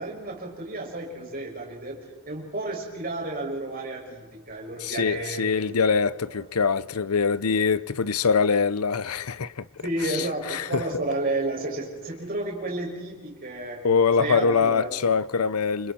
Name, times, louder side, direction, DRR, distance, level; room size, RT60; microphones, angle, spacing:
voice 1, 0.0-6.4 9.8-13.9 14.2-14.9, right 2 dB, 40° right, 6.4 m, -32 dB
voice 2, 4.8-9.6 10.1-10.8 13.8-15.9, left 5 dB, 85° left, 0.7 m, -23 dB
29.0 x 26.0 x 4.4 m
head